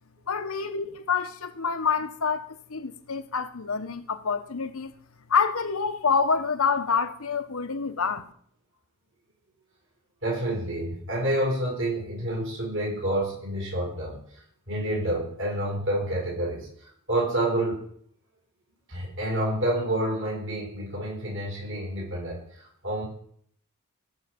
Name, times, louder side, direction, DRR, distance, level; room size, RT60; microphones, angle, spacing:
voice 1, 0.3-4.9 5.3-8.3, left 5 dB, 70° left, 1.0 m, -27 dB
voice 2, 10.2-14.2 14.7-17.8 18.9-22.4 22.8-23.0, right 1 dB, 60° right, 7.0 m, -28 dB
18.0 x 6.5 x 5.2 m
head